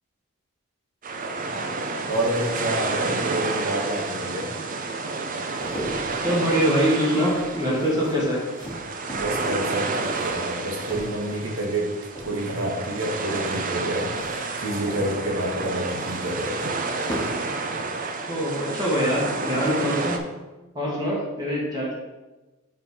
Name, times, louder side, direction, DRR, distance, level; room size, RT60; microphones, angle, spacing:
sound 1, 1.0-20.2, right 3 dB, 40° right, 0.6 m, -30 dB
voice 1, 2.0-4.5 9.1-11.9 12.2-16.6, right 1 dB, 65° right, -1 dB, 1.4 m, -28 dB
sound 2, 5.3-11.8 12.1-12.7 14.0-17.5 17.8-17.9, equal, 15° left, 1.4 m, -39 dB
voice 2, 6.2-8.4 18.3-20.2 20.7-21.9, equal, 20° right, -6 dB, 1.7 m, -23 dB
5.4 x 5.4 x 4.8 m, 1.1 s
head